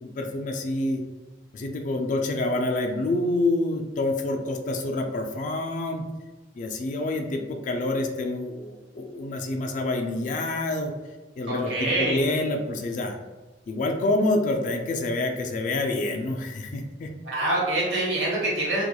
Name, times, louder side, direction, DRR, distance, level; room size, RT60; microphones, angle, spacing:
voice 1, 0.0-1.0 1.5-6.0 6.6-10.9 11.4-13.2 13.7-17.1, left 2 dB, 45° left, 3 dB, 0.3 m, -27 dB
voice 2, 11.5-12.2 17.2-18.8, right 1 dB, 75° right, -5 dB, 1.0 m, -25 dB
2.9 x 2.2 x 2.2 m, 1.2 s
head